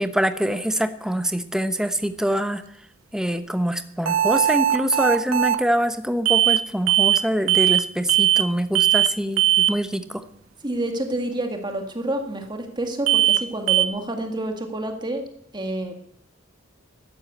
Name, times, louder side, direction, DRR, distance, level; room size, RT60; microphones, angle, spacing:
voice 1, 0.0-2.6 3.1-10.2, equal, 5° right, 9 dB, 1.0 m, -24 dB
sound 1, 4.1-5.6 6.3-6.6 6.9-7.2 7.5-8.5 8.7-9.1 9.4-9.7 13.1-13.4 13.7-13.9, right 12 dB, 85° right, 0.7 m, -19 dB
voice 2, 10.6-15.2 15.5-15.9, right 1 dB, 20° right, 4 dB, 1.9 m, -28 dB
13.0 x 11.0 x 8.2 m, 0.73 s
head